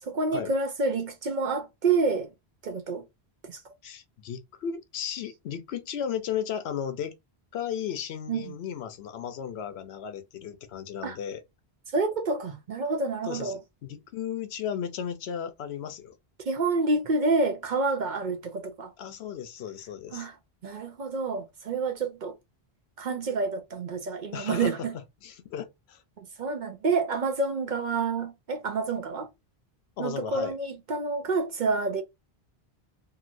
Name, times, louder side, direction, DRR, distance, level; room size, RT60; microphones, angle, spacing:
voice 1, 0.0-2.3 2.6-3.0 3.4-3.6 8.3-8.5 11.0-11.2 11.9-13.6 16.4-18.9 20.1-20.4 20.6-22.3 23.0-24.9 26.2-29.3 30.0-32.0, right 3 dB, 55° right, 0.6 m, -28 dB
voice 2, 3.8-7.2 7.5-11.4 13.3-16.2 19.0-20.3 24.3-24.9 25.2-26.0 30.0-30.5, left 8 dB, 80° left, 0.9 m, -35 dB
2.9 x 2.7 x 2.5 m
omnidirectional pair, 1.1 m